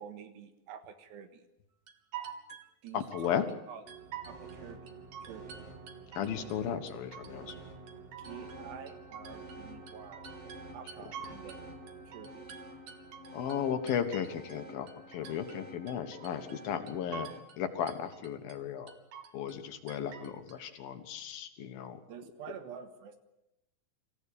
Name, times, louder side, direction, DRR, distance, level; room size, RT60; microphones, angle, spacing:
voice 1, 0.0-1.4 2.8-3.8 4.3-4.9 5.2-5.6 8.2-10.3 10.7-11.7 12.1-12.5 22.1-23.2, right 8 dB, 80° right, 8 dB, 3.6 m, -48 dB
sound 1, 1.9-3.6 3.9-4.6 4.9-6.6 6.9-7.6 7.9-11.6 11.9-14.6 14.9-15.6 15.9-16.6 16.9-17.6 17.9-18.6 18.9-19.6 19.9-20.6, right 8 dB, 55° right, 2.8 m, -47 dB
voice 2, 2.9-3.5 6.1-7.5 13.3-17.3 17.6-18.9 19.3-22.0, left 8 dB, 65° left, 8 dB, 3.0 m, -35 dB
sound 2, 3.8-17.4, right 2 dB, 30° right, 1.2 m, -49 dB
26.0 x 15.5 x 8.6 m, 0.91 s
omnidirectional pair, 4.9 m